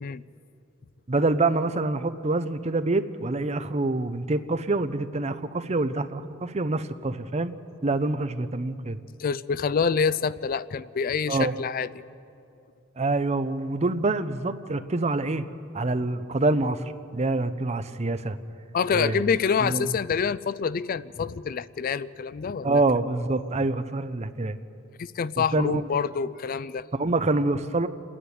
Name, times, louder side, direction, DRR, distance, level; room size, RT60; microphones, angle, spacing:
voice 1, 1.1-7.5 7.8-9.0 11.3-11.5 13.0-15.5 15.7-18.4 18.9-19.3 19.6-19.9 22.6-24.6 25.4-25.8 26.9-27.9, right 2 dB, 35° right, 11 dB, 0.7 m, -26 dB
voice 2, 9.2-11.9 18.7-22.8 25.0-26.9, left 6 dB, 45° left, 17 dB, 0.4 m, -26 dB
27.5 x 10.0 x 9.4 m, 2.6 s
head